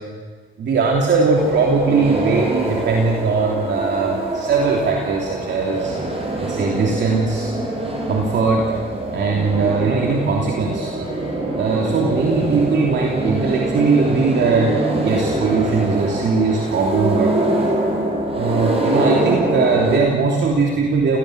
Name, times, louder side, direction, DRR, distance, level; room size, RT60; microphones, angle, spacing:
voice 1, 0.6-5.9 6.4-7.5 8.1-8.7 9.1-10.9 11.5-17.3 18.3-21.2, right 4 dB, 60° right, 0 dB, 3.2 m, -20 dB
sound 1, 1.4-20.0, right 1 dB, 30° right, 6.2 m, -24 dB
29.0 x 18.5 x 8.1 m, 1.5 s
cardioid pair, 90°, 20 cm